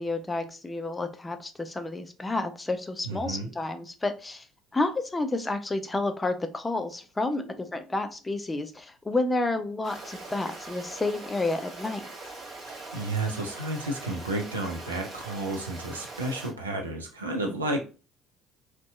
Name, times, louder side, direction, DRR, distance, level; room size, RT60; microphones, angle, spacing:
voice 1, 0.0-4.4 4.7-12.1, left 2 dB, 20° left, 8 dB, 0.4 m, -30 dB
voice 2, 3.0-3.5 7.4-7.5 12.7-17.8, right 2 dB, 85° right, 2 dB, 0.4 m, -32 dB
Stream, 9.8-16.5, right 2 dB, 40° right, 1.0 m, -42 dB
2.7 x 2.1 x 2.3 m, 0.34 s
figure-of-eight pair, 55°, 0 cm